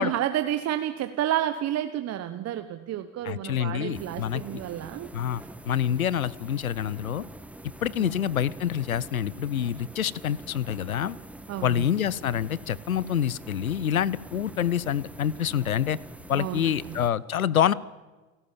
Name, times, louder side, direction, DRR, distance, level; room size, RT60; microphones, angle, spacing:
voice 1, 0.0-5.1 8.0-8.1 11.5-11.9 16.3-17.0, right 11 dB, 40° right, 9 dB, 1.2 m, -30 dB
voice 2, 3.2-4.4 5.1-7.2 7.8-11.2 11.6-16.0 16.3-17.7, left 9 dB, 90° left, 22 dB, 0.7 m, -27 dB
sound 1, 3.9-17.1, right 1 dB, 5° right, 1.1 m, -45 dB
29.0 x 12.5 x 7.0 m, 1.3 s
hypercardioid pair, 80°, 41 cm